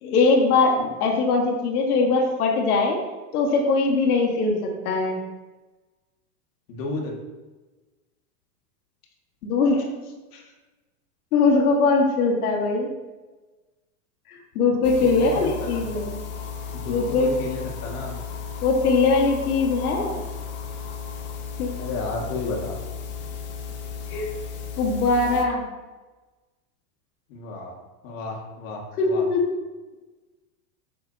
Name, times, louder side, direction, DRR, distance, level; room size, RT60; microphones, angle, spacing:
voice 1, 0.0-3.0 3.3-5.2 9.4-9.9 10.3-10.4 11.3-12.9 14.3-16.2 16.9-17.3 18.6-20.1 21.6-21.8 24.1-24.3 24.8-25.6 29.0-29.4, left 3 dB, 75° left, 1 dB, 1.8 m, -21 dB
voice 2, 6.7-7.1 15.0-15.9 16.7-18.2 21.8-22.8 27.3-27.7 28.0-29.2, left 3 dB, 60° left, 0 dB, 2.1 m, -32 dB
sound 1, 14.8-25.5, left 6 dB, 25° left, 0.7 m, -35 dB
8.9 x 6.7 x 2.9 m, 1.2 s
supercardioid pair, 150°, 45 cm